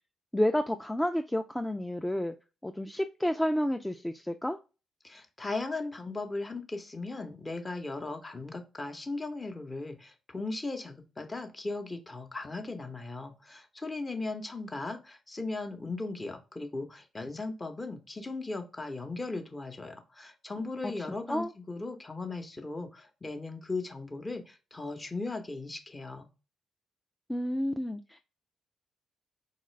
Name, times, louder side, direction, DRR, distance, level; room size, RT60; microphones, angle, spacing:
voice 1, 0.3-2.3 2.6-4.6 21.3-21.5 27.3-28.2, left 1 dB, 10° left, 0.3 m, -30 dB
voice 2, 5.0-26.3, left 3 dB, 25° left, 0.8 m, -37 dB
3.8 x 2.4 x 3.1 m
supercardioid pair, 55°, 0 cm